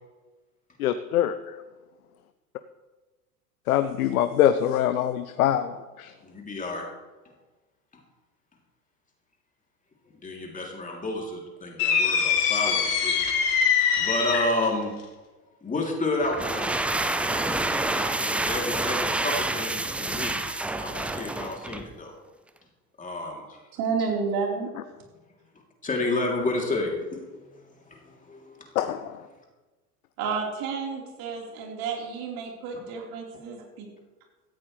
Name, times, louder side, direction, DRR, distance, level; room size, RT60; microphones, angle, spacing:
voice 1, 0.8-1.3 3.7-5.7 6.0-6.1 28.8-29.0, left 11 dB, 65° left, 12 dB, 0.8 m, -23 dB
voice 2, 6.2-6.9 10.2-13.2 14.0-14.9 15.6-16.7 18.2-20.4 20.8-22.1 23.0-23.4 25.8-27.3 27.9-28.7, left 2 dB, 15° left, -1 dB, 3.2 m, -30 dB
Whistling Firework, 11.8-14.7, left 6 dB, 50° left, 2.9 m, -23 dB
sound 1, 16.2-21.9, right 2 dB, 5° right, 0.3 m, -28 dB
voice 3, 23.7-24.7 30.2-33.9, right 5 dB, 45° right, -1 dB, 4.3 m, -31 dB
17.0 x 14.5 x 3.3 m, 1.2 s
figure-of-eight pair, 85°, 46 cm